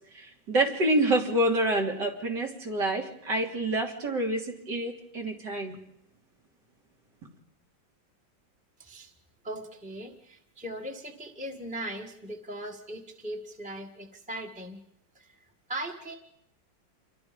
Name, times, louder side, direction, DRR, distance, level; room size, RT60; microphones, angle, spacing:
voice 1, 0.1-5.8, right 1 dB, 60° right, 1 dB, 3.6 m, -27 dB
voice 2, 8.8-9.1 9.4-14.8 15.1-16.2, right 1 dB, 5° right, 1 dB, 1.5 m, -39 dB
28.0 x 23.0 x 5.3 m, 0.77 s
omnidirectional pair, 2.1 m